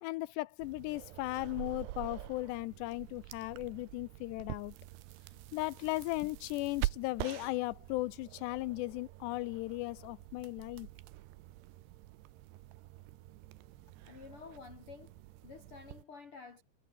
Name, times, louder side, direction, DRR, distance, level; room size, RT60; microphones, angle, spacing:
voice 1, 0.0-4.8 5.5-10.9, left 20 dB, 85° left, 2.6 m, -37 dB
sound 1, 0.6-16.0, right 17 dB, 80° right, 2.9 m, -45 dB
voice 2, 14.0-16.6, left 5 dB, 40° left, 2.2 m, -51 dB
omnidirectional pair, 5.2 m